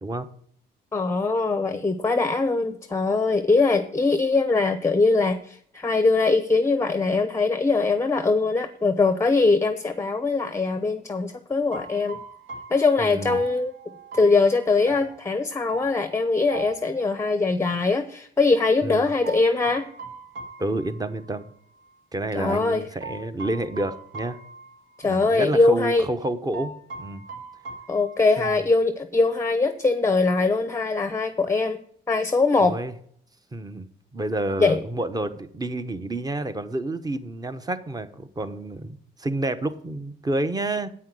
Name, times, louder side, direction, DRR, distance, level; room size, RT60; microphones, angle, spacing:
voice 1, 0.9-12.2 12.7-13.7 14.1-19.9 22.4-22.8 25.0-26.0 27.9-31.8 32.1-32.7 34.6-34.8, left 3 dB, 15° left, 9 dB, 0.7 m, -22 dB
sound 1, 11.7-17.5 19.2-21.5 21.8-21.9 23.0-25.3 25.6-25.7 26.5-28.6, right 4 dB, 75° right, 2.6 m, -41 dB
voice 2, 13.0-13.4 18.8-19.1 20.6-21.5 22.1-24.4 25.0-26.7 27.0-27.2 28.4-28.5 32.6-32.9 33.5-40.9, right 2 dB, 20° right, 11 dB, 1.0 m, -29 dB
8.5 x 5.7 x 7.9 m, 0.63 s
cardioid pair, 90°, 20 cm